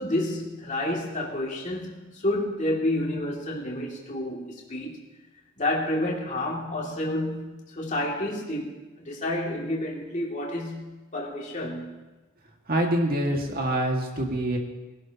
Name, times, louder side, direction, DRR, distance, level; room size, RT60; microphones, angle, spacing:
voice 1, 0.0-5.0 5.6-12.0, left 1 dB, 35° left, -3 dB, 2.5 m, -30 dB
voice 2, 12.7-14.6, right 1 dB, 45° right, 1 dB, 2.0 m, -25 dB
21.5 x 12.0 x 3.0 m, 1.1 s
head